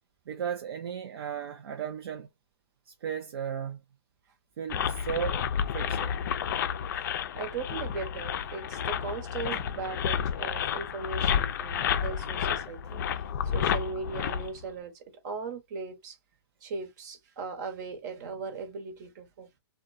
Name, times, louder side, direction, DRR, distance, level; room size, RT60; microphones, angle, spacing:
voice 1, 0.3-2.3 2.9-3.8 4.6-5.4 5.7-6.2 9.5-9.6, right 8 dB, 65° right, 0.5 m, -35 dB
sound 1, 4.7-14.6, left 8 dB, 45° left, 0.4 m, -30 dB
voice 2, 7.3-13.0 13.5-16.2 16.6-19.6, right 4 dB, 40° right, 1.0 m, -38 dB
2.4 x 2.2 x 2.5 m
hypercardioid pair, 145°, 14 cm